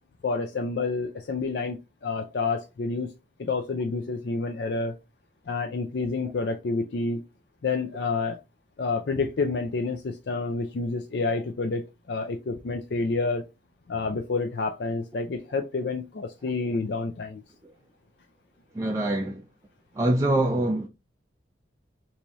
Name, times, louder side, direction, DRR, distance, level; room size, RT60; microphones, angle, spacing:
voice 1, 0.2-3.1 3.4-4.9 5.5-7.2 7.6-8.4 8.8-13.5 13.9-17.4, left 3 dB, 55° left, 0.4 m, -29 dB
voice 2, 18.8-19.4 20.0-20.9, right 1 dB, 15° right, 0.3 m, -24 dB
3.0 x 2.8 x 3.4 m
head